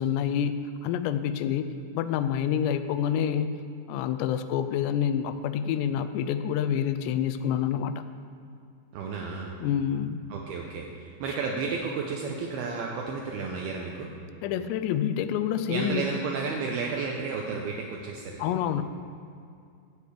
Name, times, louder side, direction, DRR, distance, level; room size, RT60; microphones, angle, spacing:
voice 1, 0.0-1.7 1.9-3.6 3.9-7.9 9.6-10.2 14.4-16.1 18.4-18.8, left 9 dB, 85° left, 9 dB, 2.6 m, -27 dB
voice 2, 8.9-9.5 10.3-14.1 15.7-18.4, right 4 dB, 80° right, -1 dB, 2.3 m, -32 dB
12.0 x 4.8 x 8.4 m, 2.3 s
omnidirectional pair, 5.2 m